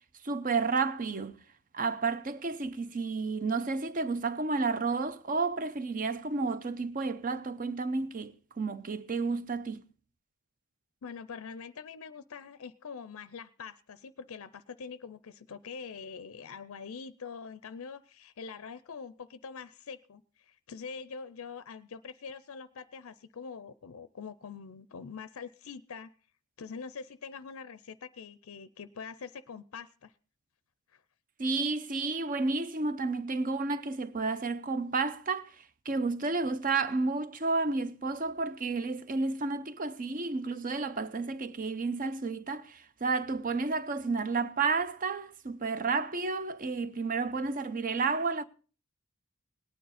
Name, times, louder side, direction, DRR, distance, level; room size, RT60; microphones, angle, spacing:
voice 1, 0.2-1.4 1.7-9.8 31.4-35.5 35.9-48.4, right 4 dB, 40° right, 0.6 m, -31 dB
voice 2, 11.0-26.1 26.6-30.1 30.9-31.0, left 5 dB, 70° left, 0.5 m, -44 dB
18.5 x 9.3 x 4.1 m
head